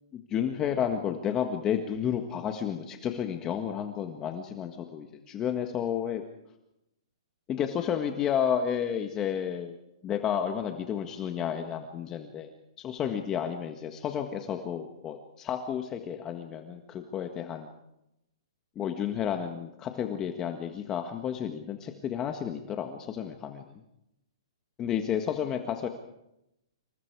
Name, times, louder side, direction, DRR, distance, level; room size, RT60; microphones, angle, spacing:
voice 1, 0.1-6.2 7.5-9.7 10.0-12.5 12.8-17.7 18.7-23.6 24.8-25.9, left 8 dB, 20° left, 5 dB, 1.6 m, -31 dB
27.5 x 24.5 x 4.8 m, 0.84 s
hypercardioid pair, 155°, 3 cm